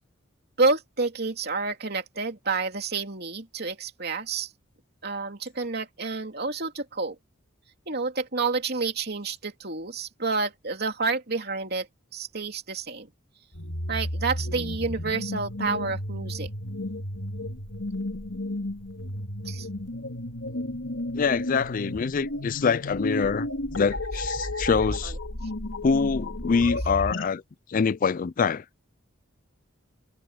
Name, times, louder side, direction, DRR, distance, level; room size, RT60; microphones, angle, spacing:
voice 1, 0.6-4.5 5.0-7.2 7.9-11.9 12.1-13.1 13.9-16.5 19.4-19.7 25.0-25.2, right 4 dB, 55° right, 3.1 m, -29 dB
sound 1, 13.5-27.3, left 1 dB, 80° left, 2.9 m, -33 dB
voice 2, 21.1-23.5 23.7-25.1 25.8-27.4 27.7-28.6, left 5 dB, 45° left, 0.4 m, -25 dB
head